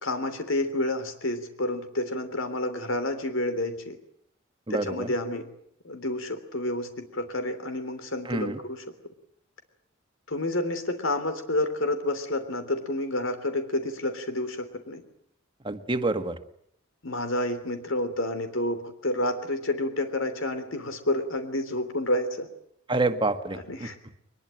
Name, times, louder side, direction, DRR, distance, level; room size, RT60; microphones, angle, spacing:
voice 1, 0.0-4.0 4.7-5.5 5.8-8.8 10.3-15.0 17.0-22.5 23.7-24.0, left 1 dB, 75° left, 9 dB, 3.4 m, -29 dB
voice 2, 4.7-5.1 8.2-8.6 15.6-16.4 22.9-23.9, right 2 dB, 25° right, 8 dB, 1.6 m, -27 dB
23.0 x 21.0 x 9.1 m, 0.70 s
head